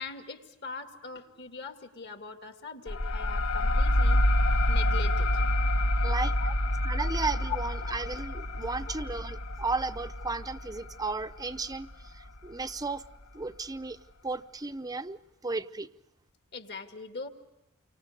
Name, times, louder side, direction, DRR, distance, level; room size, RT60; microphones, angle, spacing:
voice 1, 0.0-4.2 4.7-5.5 6.4-6.5 7.5-7.6 16.5-17.3, left 5 dB, 55° left, 5 dB, 2.3 m, -41 dB
sound 1, 2.9-12.1, left 1 dB, 75° left, 1.1 m, -27 dB
voice 2, 6.0-6.3 6.8-13.1 13.3-14.0 14.2-15.9, right 3 dB, 20° right, 10 dB, 0.7 m, -34 dB
29.5 x 25.0 x 5.2 m, 0.93 s
head